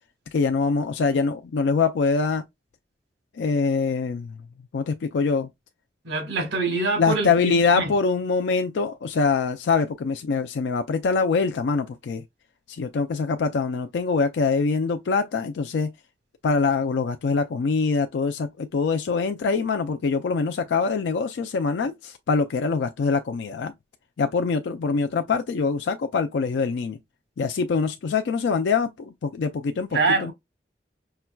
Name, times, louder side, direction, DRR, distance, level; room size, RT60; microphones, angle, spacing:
voice 1, 0.3-2.5 3.4-4.3 4.7-5.5 7.0-12.2 12.7-15.9 16.4-23.7 24.2-27.0 27.4-30.3, left 4 dB, 85° left, 0.4 m, -24 dB
voice 2, 6.0-7.9 29.9-30.3, right 3 dB, 90° right, 1.3 m, -25 dB
5.5 x 2.2 x 2.2 m
head